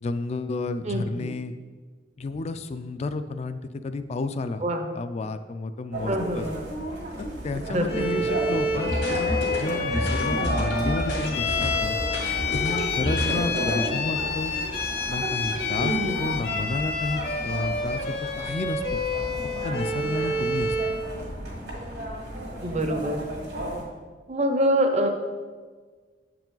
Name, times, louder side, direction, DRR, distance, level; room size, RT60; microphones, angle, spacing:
voice 1, 0.0-1.6 2.2-4.6 4.9-6.5 7.2-12.0 12.5-14.5 15.1-19.0 19.6-21.0, left 3 dB, 40° left, 10 dB, 0.3 m, -31 dB
voice 2, 0.9-1.3 4.6-4.8 6.1-6.5 7.5-8.1 15.8-16.2 22.6-23.3 24.3-25.1, right 1 dB, 40° right, 5 dB, 0.7 m, -25 dB
sound 1, 5.9-23.8, right 1 dB, 70° right, 1.9 m, -34 dB
Bowed string instrument, 7.9-21.1, left 3 dB, 60° left, 0.8 m, -29 dB
sound 2, 8.7-13.7, equal, 90° left, 1.8 m, -30 dB
7.5 x 4.8 x 3.8 m, 1.4 s
head